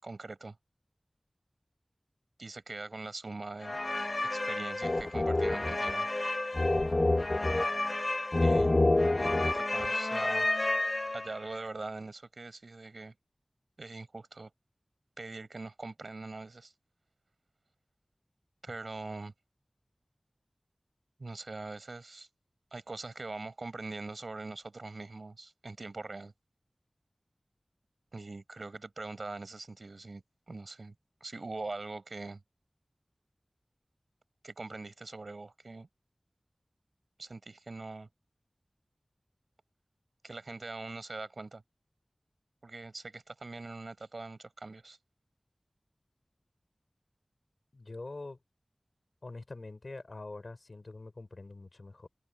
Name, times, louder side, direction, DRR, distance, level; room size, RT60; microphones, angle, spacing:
voice 1, 0.0-0.6 2.4-3.8 4.2-6.1 8.4-8.8 9.3-10.5 11.1-13.1 13.8-14.5 15.2-16.7 18.6-19.3 21.2-22.3 22.7-26.3 28.1-30.9 31.2-32.4 34.4-35.9 37.2-38.1 40.2-41.6 42.6-45.0, right 3 dB, 85° right, 5.6 m, -42 dB
sound 1, 3.6-11.5, left 2 dB, 55° left, 0.8 m, -28 dB
voice 2, 47.7-48.4 49.2-52.1, left 2 dB, 75° left, 5.1 m, -44 dB
wide cardioid pair, 40°, 0 cm